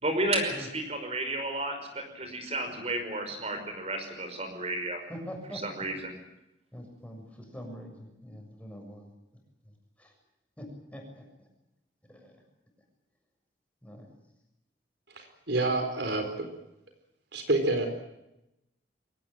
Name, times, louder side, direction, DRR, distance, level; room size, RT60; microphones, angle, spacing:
voice 1, 0.0-5.0 5.8-6.1, right 2 dB, 35° right, 6 dB, 5.4 m, -32 dB
voice 2, 5.1-5.8 6.7-9.1 10.0-10.1 10.6-11.2 12.1-12.4 13.8-14.1, equal, 10° left, 2 dB, 6.9 m, -44 dB
voice 3, 15.1-16.3 17.3-17.9, right 2 dB, 70° right, 6 dB, 4.2 m, -28 dB
23.5 x 18.5 x 9.0 m, 0.90 s
head